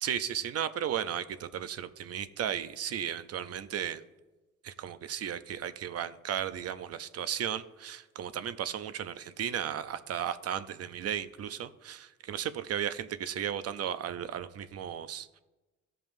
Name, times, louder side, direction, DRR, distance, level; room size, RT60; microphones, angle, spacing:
voice 1, 0.0-4.0 4.6-15.4, right 9 dB, 55° right, 13 dB, 0.6 m, -35 dB
15.0 x 5.3 x 2.6 m, 1.1 s
cardioid pair, 90°, 30 cm